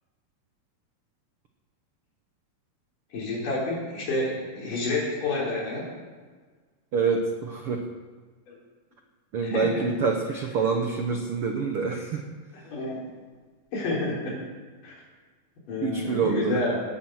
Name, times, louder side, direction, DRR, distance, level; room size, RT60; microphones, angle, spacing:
voice 1, 3.1-5.9 8.5-8.6 9.4-9.8 12.6-13.0 13.7-14.3 14.8-14.9 15.7-16.8, left 2 dB, 60° left, -4 dB, 5.5 m, -29 dB
voice 2, 6.9-7.8 9.3-12.2 15.8-16.6, right 5 dB, 75° right, 3 dB, 1.2 m, -26 dB
18.5 x 9.0 x 6.4 m, 1.5 s
omnidirectional pair, 4.2 m